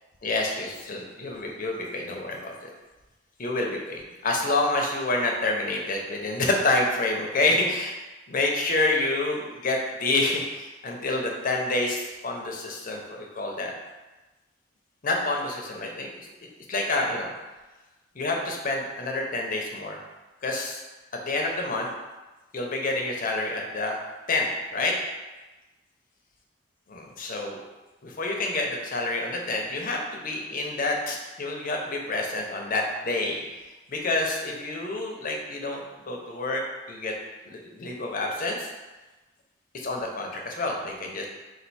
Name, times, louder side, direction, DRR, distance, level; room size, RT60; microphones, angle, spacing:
voice 1, 0.2-2.5 3.4-8.0 8.3-13.7 15.0-16.3 16.7-17.3 18.1-20.0 20.4-20.8 21.1-21.9 22.5-24.0 24.3-25.0 26.9-27.6 28.0-37.1 37.4-38.7 39.7-41.3, left 2 dB, 45° left, 0 dB, 0.7 m, -28 dB
4.4 x 2.5 x 4.1 m, 1.1 s
head